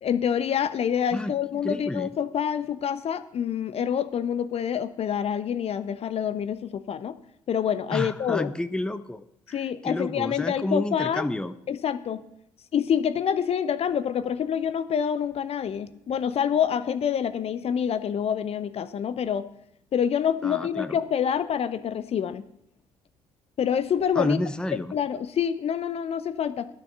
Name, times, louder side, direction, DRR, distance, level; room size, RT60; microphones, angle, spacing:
voice 1, 0.0-7.1 7.5-8.5 9.5-11.3 11.7-12.2 12.7-19.5 19.9-22.4 23.6-24.4 24.7-26.7, left 8 dB, 40° left, 13 dB, 0.7 m, -27 dB
voice 2, 1.6-2.1 7.9-11.5 20.4-21.0 24.2-24.9, left 1 dB, 5° left, 11 dB, 0.7 m, -30 dB
12.0 x 7.0 x 6.0 m, 0.78 s
figure-of-eight pair, 45°, 15 cm